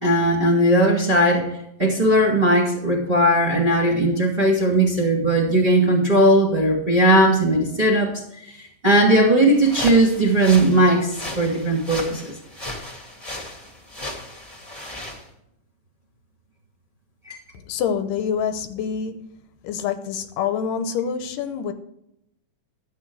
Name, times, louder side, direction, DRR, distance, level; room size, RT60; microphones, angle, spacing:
voice 1, 0.0-1.5 1.8-8.1 8.6-12.3 17.2-17.3, right 1 dB, 20° right, 1.6 m, -18 dB
sound 1, 9.5-15.2, left 1 dB, 15° left, 1.7 m, -35 dB
voice 2, 17.7-19.2 19.6-21.7, left 7 dB, 80° left, 2.3 m, -26 dB
12.0 x 8.3 x 4.6 m
omnidirectional pair, 4.0 m